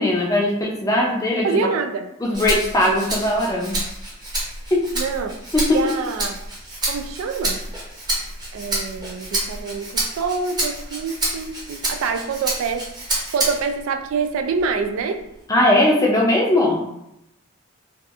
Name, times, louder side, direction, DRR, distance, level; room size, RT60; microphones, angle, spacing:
voice 1, 0.0-1.5 2.2-3.8 4.7-4.9 5.5-5.9 15.5-16.9, left 1 dB, 15° left, -2 dB, 0.4 m, -19 dB
voice 2, 1.4-2.1 5.0-5.3 5.7-6.4 6.9-7.6 8.5-15.2, right 5 dB, 90° right, 7 dB, 0.3 m, -26 dB
Rattle (instrument), 2.3-13.8 14.2-15.4, right 1 dB, 20° right, 0.6 m, -28 dB
2.7 x 2.3 x 2.3 m, 0.82 s
head